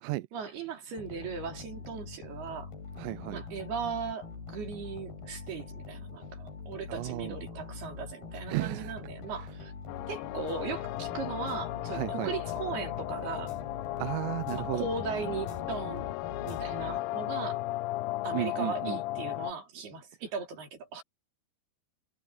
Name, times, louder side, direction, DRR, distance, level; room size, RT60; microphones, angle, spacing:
voice 1, 0.3-2.7 3.3-9.7 10.1-13.5 14.5-16.1 16.4-17.6 18.2-21.0, right 5 dB, 70° right, 6.1 m, -38 dB
sound 1, 1.0-17.4, left 4 dB, 65° left, 6.7 m, -44 dB
voice 2, 3.0-3.4 6.9-7.4 8.5-8.9 11.9-12.3 14.0-14.9 18.3-19.0, right 18 dB, 85° right, 1.9 m, -34 dB
sound 2, 9.9-19.5, left 17 dB, 90° left, 2.0 m, -35 dB
omnidirectional pair, 4.7 m